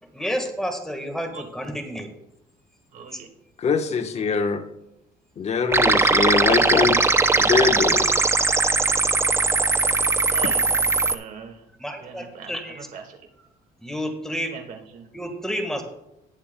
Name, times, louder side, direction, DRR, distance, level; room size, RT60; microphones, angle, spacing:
voice 1, 0.0-2.1 3.1-3.2 11.8-12.9 13.8-14.5 15.1-15.8, equal, 5° left, 4 dB, 1.5 m, -30 dB
voice 2, 2.9-3.3 10.3-10.6 11.0-11.6 12.0-12.5 12.9-13.2 14.5-15.1, right 6 dB, 55° right, 5 dB, 1.6 m, -39 dB
voice 3, 3.6-4.6 5.4-7.0 7.4-8.1, left 5 dB, 40° left, 5 dB, 1.0 m, -22 dB
sound 1, 5.7-11.1, right 3 dB, 15° right, 0.5 m, -20 dB
19.5 x 7.0 x 2.2 m, 0.85 s
cardioid pair, 110°, 17 cm